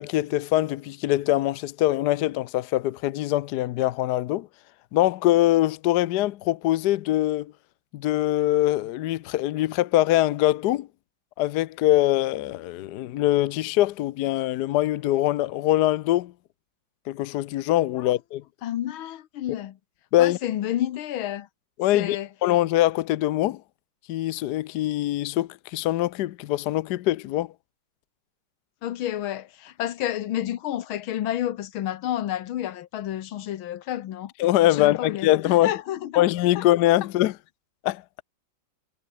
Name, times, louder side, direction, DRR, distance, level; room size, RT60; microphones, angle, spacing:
voice 1, 0.0-4.5 4.9-7.5 7.9-10.9 11.4-16.3 17.1-18.4 19.5-19.6 20.1-20.4 21.8-23.6 24.1-27.5 34.4-35.7 36.2-37.4 37.8-38.0, left 15 dB, 70° left, 1.0 m, -23 dB
voice 2, 18.6-19.8 20.2-21.5 21.9-22.3 28.8-34.3 34.7-35.3 35.6-36.3 36.6-36.7, left 12 dB, 90° left, 1.8 m, -30 dB
omnidirectional pair, 2.2 m